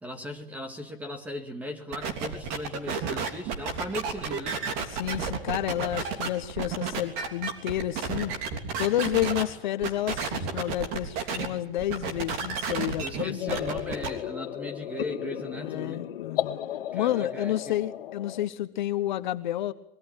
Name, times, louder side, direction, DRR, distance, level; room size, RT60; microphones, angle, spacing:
voice 1, 0.0-4.6 13.0-16.1 16.9-17.8, left 1 dB, 5° right, 7 dB, 2.0 m, -38 dB
sound 1, 1.9-9.4 9.8-11.5 11.8-14.1, right 5 dB, 30° right, 3.3 m, -31 dB
voice 2, 4.9-8.3 8.8-13.7 15.6-16.6 16.9-19.7, left 13 dB, 50° left, 12 dB, 1.2 m, -30 dB
sound 2, 13.4-18.5, left 11 dB, 70° left, 1.8 m, -34 dB
24.5 x 22.5 x 8.9 m, 0.67 s
supercardioid pair, 170°, 29 cm